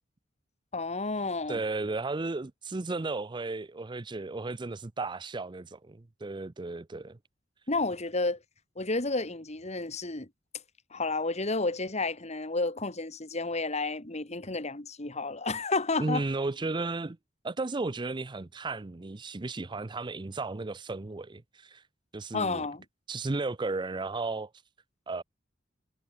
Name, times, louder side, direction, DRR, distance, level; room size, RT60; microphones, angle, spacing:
voice 1, 0.7-1.6 7.7-8.4 8.8-10.3 10.9-16.2 22.3-22.8, left 3 dB, 35° left, 2.3 m, -31 dB
voice 2, 1.5-7.2 16.0-17.2 17.4-21.8 22.1-22.6 23.1-24.5 25.1-25.2, right 3 dB, 25° right, 0.5 m, -34 dB
head